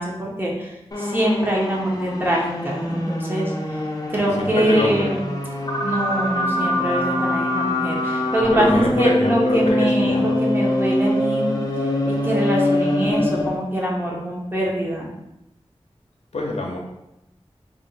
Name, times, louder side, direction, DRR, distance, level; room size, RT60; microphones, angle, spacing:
voice 1, 0.0-3.8 4.1-5.3 5.8-11.5 12.1-15.1, right 1 dB, 20° right, -2 dB, 0.7 m, -24 dB
sound 1, 0.9-13.6, left 1 dB, 35° left, 0.6 m, -24 dB
voice 2, 4.4-5.2 8.5-10.4 16.3-16.8, left 2 dB, 80° left, -1 dB, 0.6 m, -24 dB
2.5 x 2.2 x 4.0 m, 0.88 s
wide cardioid pair, 70°, 11 cm